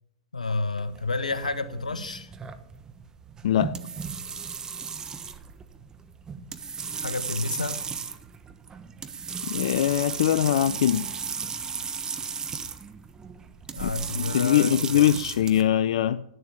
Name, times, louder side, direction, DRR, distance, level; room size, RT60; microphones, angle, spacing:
voice 1, 0.3-2.3 7.0-7.8 13.7-15.1, left 3 dB, 85° left, 12 dB, 1.1 m, -30 dB
sound 1, 0.8-15.6, right 6 dB, 20° right, 1.1 m, -35 dB
voice 2, 3.4-3.8 9.5-11.1 13.8-13.9 14.2-16.2, left 11 dB, 60° left, 14 dB, 0.4 m, -22 dB
11.0 x 9.3 x 7.5 m, 0.78 s
figure-of-eight pair, 105°, 4 cm